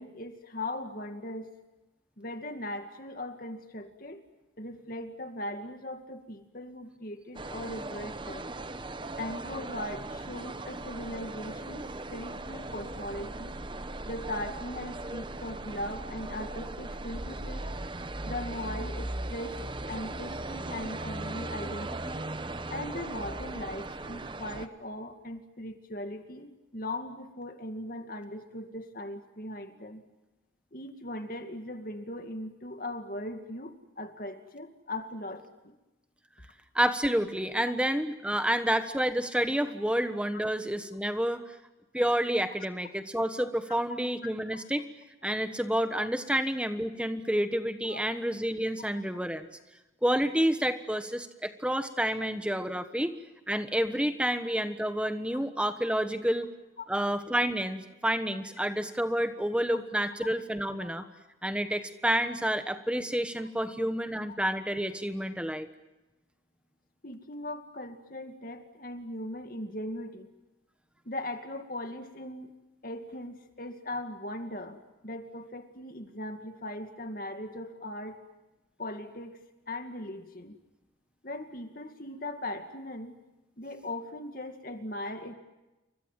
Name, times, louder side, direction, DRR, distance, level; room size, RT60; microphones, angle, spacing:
voice 1, 0.0-1.5 2.2-4.2 4.6-8.5 9.2-11.8 12.1-13.5 14.0-17.7 18.2-19.6 19.9-22.3 22.7-30.0 30.7-35.7 44.2-44.6 46.3-46.4 47.8-48.0 56.8-56.9 59.7-59.8 64.3-64.4 67.0-70.3 71.1-72.5 72.8-78.2 78.8-79.4 79.7-80.5 81.2-83.1 83.6-85.3, left 1 dB, 45° left, 6 dB, 2.3 m, -39 dB
sound 1, 7.3-24.7, right 2 dB, 25° right, 0.9 m, -38 dB
voice 2, 36.7-41.4 41.9-44.8 45.2-49.5 50.0-53.1 53.5-56.5 56.9-61.0 61.4-65.7, right 1 dB, 5° right, 9 dB, 1.3 m, -29 dB
29.5 x 24.0 x 7.6 m, 1.0 s
head